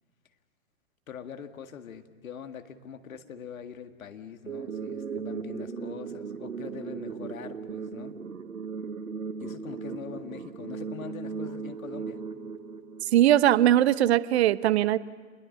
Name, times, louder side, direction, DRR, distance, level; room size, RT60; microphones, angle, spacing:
voice 1, 1.1-8.1 9.4-12.2, left 7 dB, 70° left, 8 dB, 1.8 m, -43 dB
sound 1, 4.5-13.5, right 5 dB, 90° right, 1.2 m, -37 dB
voice 2, 13.0-15.0, right 12 dB, 50° right, 17 dB, 0.9 m, -21 dB
28.0 x 21.5 x 7.3 m, 1.4 s
figure-of-eight pair, 115°, 42 cm